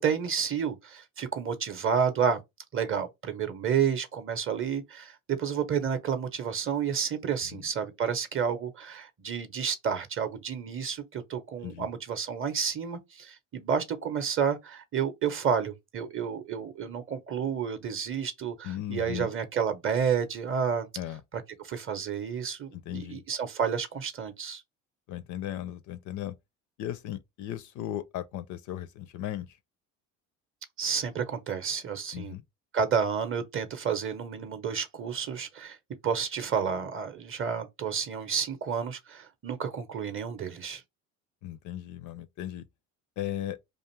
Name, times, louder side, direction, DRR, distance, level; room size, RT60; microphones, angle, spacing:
voice 1, 0.0-2.4 2.7-20.9 21.6-24.6 30.8-32.4 32.7-35.8 36.0-40.8, right 7 dB, 35° right, 0.6 m, -30 dB
voice 2, 18.6-19.3 21.0-21.2 22.7-23.2 25.1-26.4 26.8-29.6 32.1-32.4 41.4-42.6 43.2-43.6, left 12 dB, 50° left, 0.4 m, -36 dB
2.5 x 2.4 x 3.1 m
hypercardioid pair, 70°, 39 cm